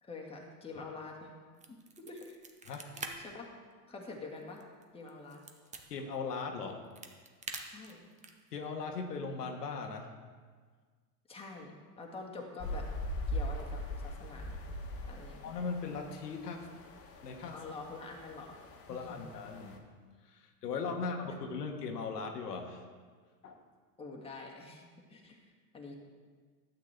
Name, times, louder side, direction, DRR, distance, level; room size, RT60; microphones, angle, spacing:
voice 1, 0.0-1.3 1.7-2.4 2.9-3.5 3.9-4.6 4.9-5.4 7.7-8.1 11.3-12.9 13.3-14.6 15.1-15.5 17.5-18.6 24.0-25.4 25.7-25.9, left 3 dB, 10° left, 0 dB, 1.7 m, -46 dB
sound 1, 1.5-3.1 3.4-3.6 4.0-5.8 6.6-8.5, right 4 dB, 15° right, 0.8 m, -45 dB
voice 2, 2.6-3.0 5.9-6.9 8.5-10.1 15.4-16.7 17.2-17.6 18.9-19.8 20.2-22.8 23.4-23.6, left 4 dB, 80° left, 3 dB, 1.3 m, -39 dB
sound 2, 12.6-19.8, left 1 dB, 30° left, 1.3 m, -41 dB
12.0 x 8.3 x 3.4 m, 1.6 s
hypercardioid pair, 100°, 46 cm